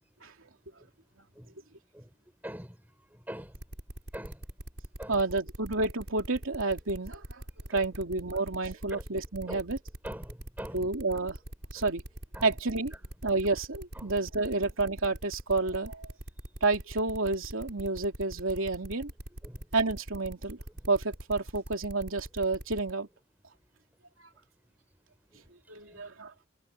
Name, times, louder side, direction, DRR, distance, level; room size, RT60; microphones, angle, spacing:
voice 1, 2.4-2.7 3.3-3.5 4.1-4.4 5.0-5.2 7.7-7.8 8.3-8.4 8.9-9.0 9.5-9.6 10.0-10.8 12.3-12.4 13.9-14.1 19.4-19.6, equal, 10° right, 4.9 m, -42 dB
sound 1, 3.5-22.9, right 1 dB, 60° right, 6.1 m, -42 dB
voice 2, 5.1-7.4 7.7-9.8 10.7-11.4 11.7-12.0 12.4-12.9 13.2-16.1 16.6-19.1 19.7-20.6 20.9-23.1 25.7-26.3, right 3 dB, 80° right, 2.9 m, -30 dB
head